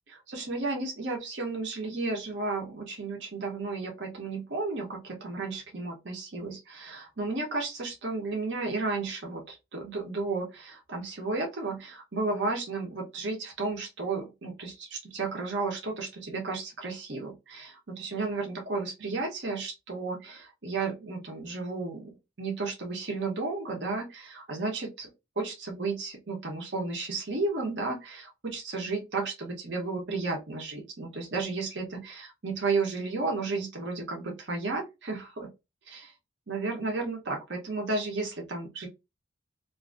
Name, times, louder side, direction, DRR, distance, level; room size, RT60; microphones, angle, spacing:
voice 1, 0.1-22.1 22.4-25.1 25.4-35.5 35.9-36.1 36.5-38.9, right 3 dB, 65° right, 0.9 m, -33 dB
2.7 x 2.6 x 2.4 m
head